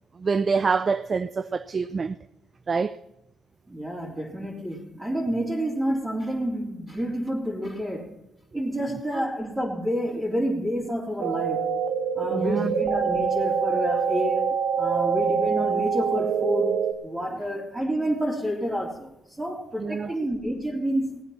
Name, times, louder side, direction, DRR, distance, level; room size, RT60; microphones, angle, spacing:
voice 1, 0.2-2.2 2.7-3.0 9.1-9.2 12.3-12.7 19.8-20.1, right 5 dB, 40° right, 0.5 m, -26 dB
voice 2, 3.7-8.2 8.5-11.7 12.2-14.5 14.8-21.2, equal, 15° right, 3.8 m, -29 dB
sound 1, 11.2-16.9, right 6 dB, 70° right, 1.2 m, -25 dB
18.5 x 8.8 x 5.8 m
cardioid pair, 90°, 0 cm